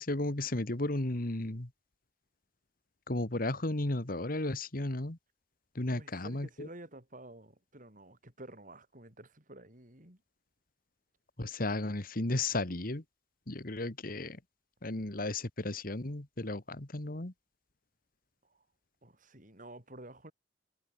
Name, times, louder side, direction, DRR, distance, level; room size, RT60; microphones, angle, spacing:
voice 1, 0.0-1.7 3.1-5.2 5.8-6.7 11.4-13.0 13.5-14.4 14.8-17.3, left 2 dB, 55° left, 2.0 m, -34 dB
voice 2, 5.9-10.2 18.4-18.6 19.0-20.3, right 1 dB, 50° right, 6.8 m, -51 dB
head